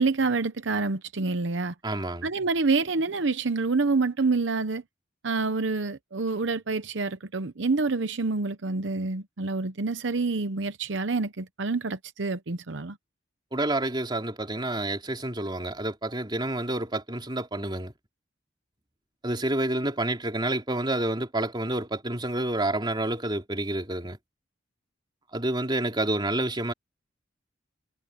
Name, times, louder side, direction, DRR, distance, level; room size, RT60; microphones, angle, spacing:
voice 1, 0.0-1.7 2.2-4.8 5.2-13.0, right 3 dB, 70° right, 0.9 m, -27 dB
voice 2, 1.8-2.3 13.5-17.9 19.2-24.2 25.3-26.7, right 1 dB, 25° right, 3.4 m, -29 dB
head